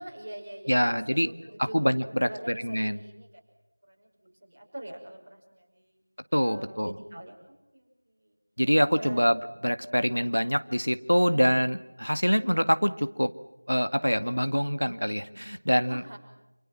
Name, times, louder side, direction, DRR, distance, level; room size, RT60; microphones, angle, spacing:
voice 1, 0.0-3.3 3.8-6.0 6.4-8.4 9.0-9.2 15.9-16.2, right 1 dB, 20° right, -2 dB, 5.9 m, -44 dB
voice 2, 0.7-1.3 1.6-2.3 2.6-3.0 6.3-6.9 8.6-9.4 9.6-13.3 13.7-16.0, equal, 85° left, 10 dB, 2.1 m, -25 dB
29.0 x 28.5 x 6.1 m, 0.94 s
figure-of-eight pair, 175°, 0 cm